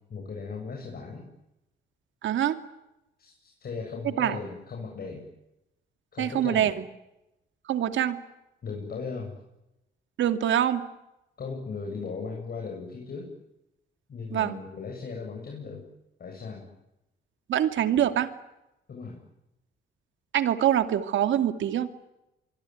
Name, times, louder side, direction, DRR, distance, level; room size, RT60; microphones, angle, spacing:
voice 1, 0.1-1.3 3.2-5.2 6.1-6.8 8.6-9.3 11.4-13.3 14.1-15.8 16.2-16.7 18.9-19.2, left 4 dB, 50° left, 0 dB, 7.9 m, -37 dB
voice 2, 2.2-2.6 4.2-4.4 6.2-6.7 7.7-8.2 10.2-10.8 14.3-14.6 17.5-18.3 20.3-21.9, right 10 dB, 75° right, 9 dB, 2.5 m, -24 dB
25.0 x 24.5 x 9.5 m, 0.91 s
cardioid pair, 90°, 20 cm